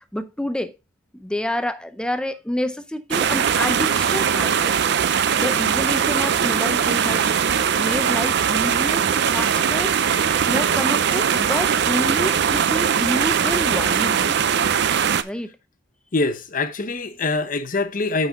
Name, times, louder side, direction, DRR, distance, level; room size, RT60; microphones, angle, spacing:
voice 1, 0.1-0.7 1.1-4.8 5.4-7.3 7.8-10.0 10.5-14.4 15.2-15.5, left 1 dB, 5° left, 0.5 m, -28 dB
sound 1, 3.1-15.2, right 7 dB, 55° right, 0.5 m, -20 dB
voice 2, 16.1-18.3, left 3 dB, 45° left, 0.8 m, -24 dB
8.2 x 5.4 x 3.6 m
head